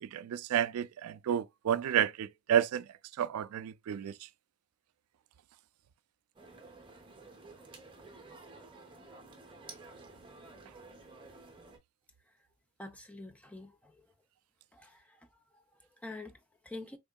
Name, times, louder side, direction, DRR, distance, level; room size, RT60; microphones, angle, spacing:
voice 1, 0.0-2.8 3.2-4.1, right 9 dB, 85° right, 0.3 m, -30 dB
sound 1, 6.4-11.8, right 3 dB, 25° right, 0.8 m, -52 dB
voice 2, 12.8-14.1 14.7-15.3 15.5-17.0, left 2 dB, 5° left, 0.6 m, -47 dB
3.7 x 3.5 x 2.2 m
head